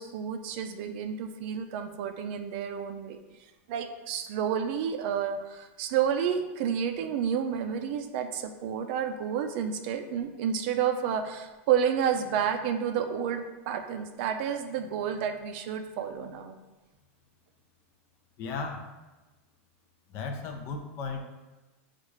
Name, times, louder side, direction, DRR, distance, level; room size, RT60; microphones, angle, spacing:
voice 1, 0.0-3.2 3.7-16.6, right 8 dB, 50° right, 6 dB, 0.4 m, -30 dB
voice 2, 18.4-18.9 20.1-21.2, left 4 dB, 35° left, 4 dB, 0.5 m, -35 dB
6.5 x 2.4 x 3.1 m, 1.1 s
supercardioid pair, 160°, 7 cm